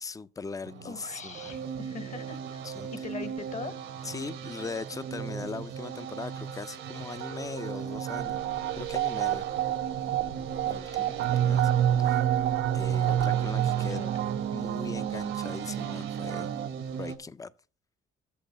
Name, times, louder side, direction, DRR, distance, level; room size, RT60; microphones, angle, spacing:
voice 1, 0.0-1.5 2.6-3.0 4.0-8.4 8.7-9.5 10.7-11.1 11.4-12.2 12.7-14.1 14.5-16.5 16.9-17.5, left 4 dB, 15° left, 0.5 m, -40 dB
sound 1, 0.6-17.2, right 7 dB, 80° right, 1.3 m, -39 dB
voice 2, 0.8-2.6 2.9-3.7 10.6-11.5 12.1-12.2 13.9-14.1, left 4 dB, 35° left, 1.0 m, -42 dB
sound 2, 6.8-16.7, right 11 dB, 65° right, 0.4 m, -29 dB
sound 3, 8.1-13.4, left 6 dB, 80° left, 2.5 m, -49 dB
8.5 x 6.7 x 5.4 m
cardioid pair, 90°, 20 cm